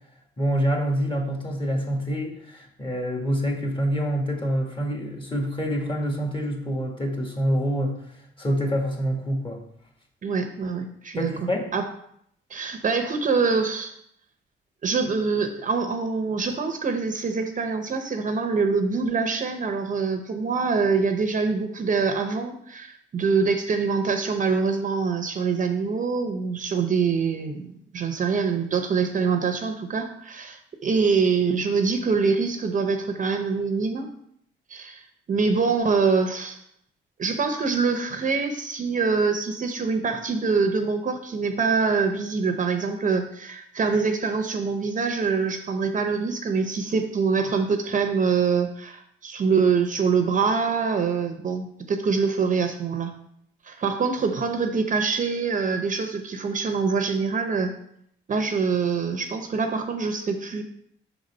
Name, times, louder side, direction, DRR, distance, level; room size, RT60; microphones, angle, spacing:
voice 1, 0.4-8.0 8.4-9.6 11.1-11.7, equal, 25° left, 2 dB, 1.6 m, -26 dB
voice 2, 10.2-11.8 12.5-13.9 14.8-34.1 34.7-36.6 37.2-53.1 53.6-57.7 58.3-60.6, right 5 dB, 40° right, 6 dB, 0.7 m, -25 dB
5.8 x 4.0 x 5.3 m, 0.69 s
cardioid pair, 90°, 20 cm